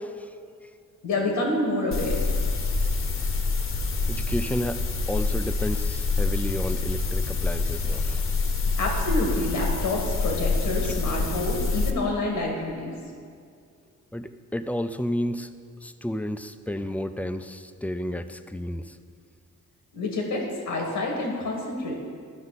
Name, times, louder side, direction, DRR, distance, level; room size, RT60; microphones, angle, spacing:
voice 1, 1.0-2.3 8.7-12.9 19.9-21.9, left 2 dB, 85° left, 0 dB, 1.6 m, -28 dB
sound 1, 1.9-11.9, left 3 dB, 40° left, 0.9 m, -26 dB
voice 2, 4.1-4.8 5.1-8.2 10.8-10.9 14.1-15.5 15.8-19.0, left 1 dB, 5° left, 9 dB, 0.4 m, -31 dB
12.5 x 5.4 x 4.0 m, 2.2 s
cardioid pair, 85°, 31 cm